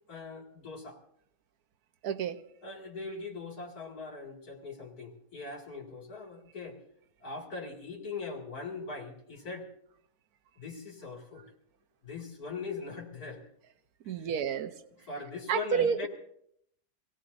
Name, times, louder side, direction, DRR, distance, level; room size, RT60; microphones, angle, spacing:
voice 1, 0.1-1.0 2.6-6.8 7.2-9.7 10.6-11.4 12.0-13.4 14.0-14.1 15.1-16.1, left 4 dB, 85° left, 0 dB, 2.9 m, -41 dB
voice 2, 2.0-2.4 14.1-14.7 15.5-16.1, right 7 dB, 85° right, 9 dB, 1.3 m, -29 dB
25.0 x 17.5 x 2.6 m, 0.72 s
omnidirectional pair, 1.6 m